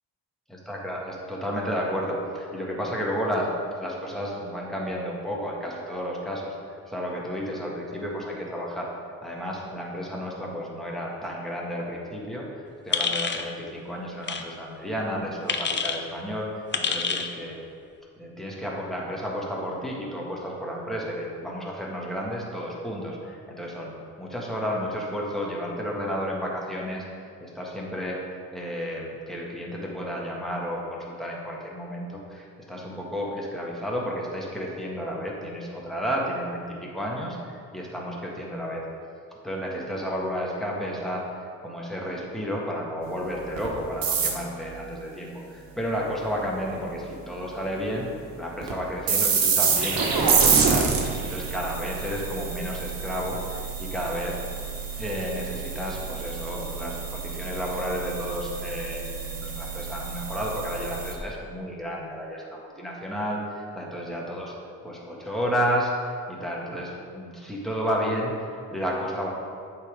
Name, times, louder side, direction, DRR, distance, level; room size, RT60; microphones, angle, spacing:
voice 1, 0.7-6.5 6.9-8.9 9.2-12.5 12.8-16.5 16.8-17.6 18.2-27.0 27.4-28.2 28.5-38.9 39.4-41.3 41.6-48.1 48.4-54.4 55.0-64.5 64.8-69.3, equal, ahead, -3 dB, 1.7 m, -32 dB
sound 1, 12.9-13.5 14.2-14.4 15.5-16.0 16.7-17.3, left 5 dB, 30° left, 0.6 m, -27 dB
sound 2, 43.6-43.7 44.0-44.6 48.6-48.7 49.1-61.1, right 5 dB, 65° right, 1.3 m, -27 dB
8.0 x 4.0 x 5.1 m, 2.3 s
cardioid pair, 70°, 38 cm